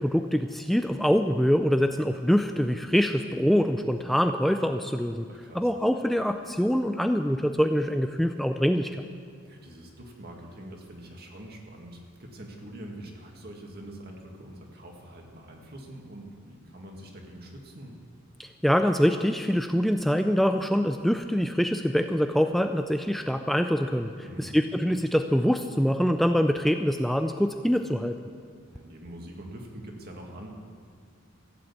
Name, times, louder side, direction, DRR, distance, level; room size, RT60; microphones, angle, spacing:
voice 1, 0.0-5.3 5.5-8.9 18.4-24.1 24.4-28.1, equal, ahead, 6 dB, 0.3 m, -24 dB
voice 2, 5.3-5.7 9.4-17.9 24.2-24.6 28.6-30.5, right 1 dB, 50° right, 1 dB, 2.1 m, -44 dB
15.0 x 7.9 x 8.5 m, 2.1 s
head